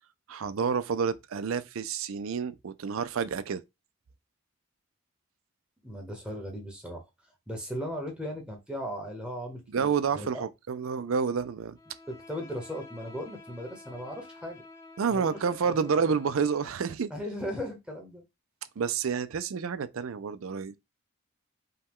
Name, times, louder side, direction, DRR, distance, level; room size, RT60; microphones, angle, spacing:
voice 1, 0.3-3.6 9.7-11.8 15.0-17.1 18.8-20.8, right 6 dB, 80° right, 0.4 m, -29 dB
voice 2, 5.8-7.0 7.5-10.4 12.1-14.6 15.1-15.7 16.0-16.1 17.1-18.2, equal, 5° right, 1.1 m, -37 dB
Bowed string instrument, 11.7-16.9, left 2 dB, 15° left, 0.8 m, -50 dB
5.4 x 2.3 x 3.6 m
head